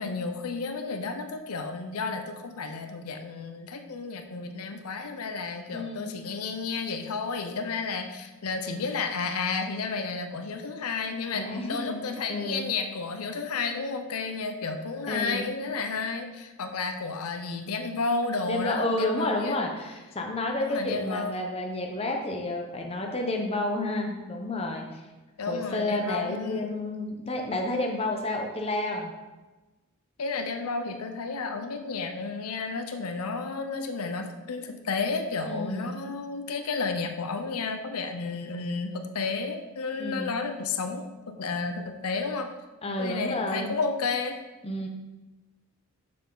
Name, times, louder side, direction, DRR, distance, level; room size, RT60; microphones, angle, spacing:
voice 1, 0.0-19.6 20.6-21.3 25.4-26.7 30.2-42.5 43.0-44.4, left 4 dB, 85° left, 6 dB, 0.7 m, -32 dB
voice 2, 5.7-6.2 11.3-12.7 15.1-15.5 18.5-25.0 25.5-29.1 35.5-36.0 40.0-40.3 42.8-43.8 44.6-44.9, left 2 dB, 25° left, 2 dB, 0.9 m, -30 dB
6.9 x 6.8 x 3.9 m, 1.1 s
head